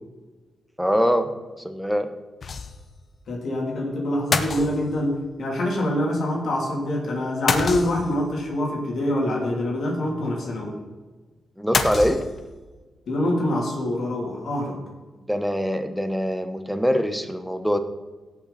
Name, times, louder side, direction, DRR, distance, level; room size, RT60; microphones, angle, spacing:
voice 1, 0.8-1.3 1.6-2.1 11.6-12.3 15.3-17.8, equal, ahead, 8 dB, 1.1 m, -23 dB
sound 1, 2.4-3.0 3.3-3.4 4.3-5.2 7.5-8.3 11.7-12.7, left 4 dB, 50° left, 0.9 m, -27 dB
voice 2, 3.3-10.8 13.1-14.8, left 1 dB, 70° left, -1 dB, 3.0 m, -25 dB
17.0 x 6.0 x 4.2 m, 1.3 s
cardioid pair, 80°, 0 cm